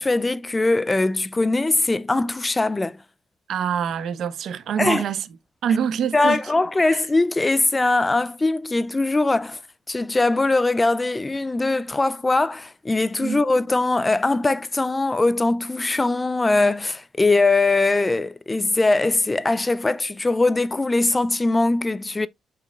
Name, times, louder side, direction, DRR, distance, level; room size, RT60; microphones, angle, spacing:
voice 1, 0.0-3.0 4.8-5.0 6.1-9.6 9.9-22.3, left 2 dB, 20° left, 0.4 m, -21 dB
voice 2, 3.5-5.3 5.6-6.4 6.9-7.0 13.2-13.4, right 8 dB, 70° right, 0.9 m, -25 dB
8.4 x 4.8 x 2.4 m
cardioid pair, 90°, 0 cm